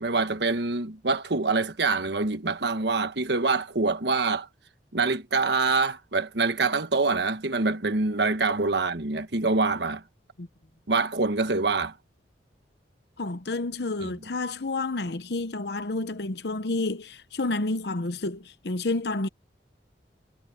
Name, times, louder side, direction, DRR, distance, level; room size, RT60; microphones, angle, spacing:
voice 1, 0.0-4.5 4.9-10.0 10.9-11.9, right 3 dB, 70° right, 1.4 m, -25 dB
voice 2, 13.2-19.3, left 2 dB, 65° left, 0.9 m, -30 dB
head